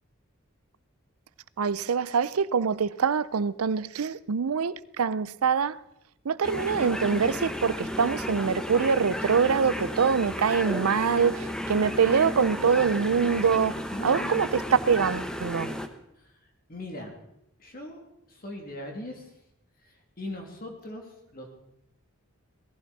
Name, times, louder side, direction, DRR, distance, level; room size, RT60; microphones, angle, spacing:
voice 1, 1.6-5.8 6.2-15.7, right 6 dB, 90° right, 0.5 m, -24 dB
sound 1, 6.4-15.9, equal, 5° left, 0.9 m, -33 dB
voice 2, 13.9-14.4 16.2-16.3 16.7-17.1 17.6-18.0 18.3-19.3 19.8-21.5, left 1 dB, 40° left, 2.5 m, -39 dB
18.0 x 15.0 x 4.1 m
head